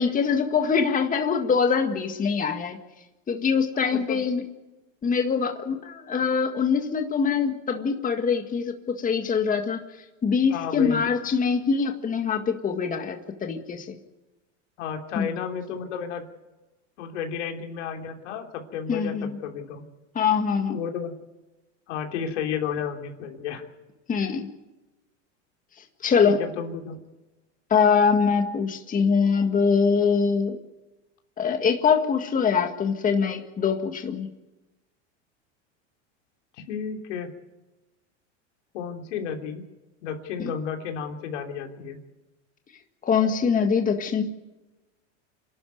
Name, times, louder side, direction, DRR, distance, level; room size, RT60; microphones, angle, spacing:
voice 1, 0.0-2.8 3.3-4.4 5.0-9.8 10.2-14.0 15.2-15.3 18.9-19.4 20.2-20.8 24.1-24.5 26.0-26.4 27.7-30.6 31.4-34.3 40.4-40.5 43.0-44.2, left 6 dB, 20° left, 5 dB, 1.8 m, -23 dB
voice 2, 3.9-4.2 10.5-11.0 14.8-16.3 17.0-19.9 20.7-21.2 21.9-23.7 26.2-27.0 36.7-37.3 38.7-39.6 40.0-42.0, left 7 dB, 75° left, 3 dB, 3.4 m, -32 dB
27.0 x 12.0 x 9.4 m, 1.1 s
supercardioid pair, 115°, 36 cm